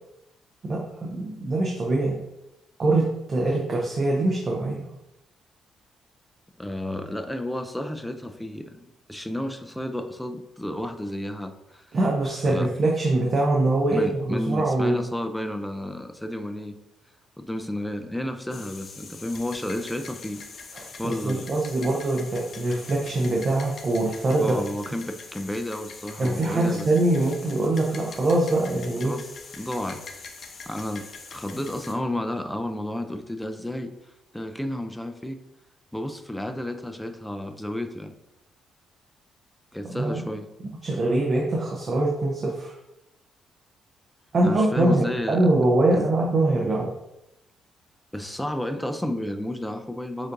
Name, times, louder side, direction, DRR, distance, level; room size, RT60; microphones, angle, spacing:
voice 1, 0.6-2.2 2.8-4.9 11.9-15.0 20.7-24.6 26.2-29.1 39.8-40.2 40.8-42.7 44.3-46.9, right 2 dB, 45° right, -2 dB, 0.6 m, -23 dB
voice 2, 6.6-11.9 12.4-12.7 13.9-16.8 17.4-20.4 21.0-21.5 24.4-26.9 29.0-30.0 30.7-33.9 34.3-35.4 35.9-38.1 39.7-40.5 44.4-45.4 45.9-46.0 48.1-50.3, left 1 dB, 5° left, 7 dB, 0.3 m, -32 dB
sound 1, 18.5-31.9, left 4 dB, 55° left, 0.6 m, -43 dB
7.0 x 2.6 x 2.5 m, 0.89 s
cardioid pair, 90°, 0 cm